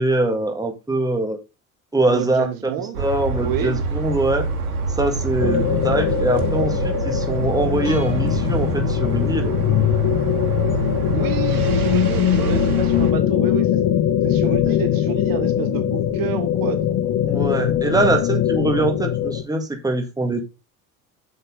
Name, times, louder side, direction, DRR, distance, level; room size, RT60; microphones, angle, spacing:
voice 1, 0.0-1.4 1.9-2.7 3.0-4.5 5.0-9.5 17.3-20.4, right 2 dB, 10° right, 2.0 m, -22 dB
voice 2, 2.1-3.0 3.4-3.8 11.1-13.7 14.2-16.8, right 11 dB, 50° right, 1.2 m, -29 dB
sound 1, 2.9-13.1, right 4 dB, 80° right, 1.5 m, -26 dB
sound 2, 5.4-19.4, left 11 dB, 45° left, 1.1 m, -21 dB
sound 3, 7.9-9.9, left 2 dB, 15° left, 4.1 m, -36 dB
7.8 x 7.1 x 3.9 m
figure-of-eight pair, 60°, 44 cm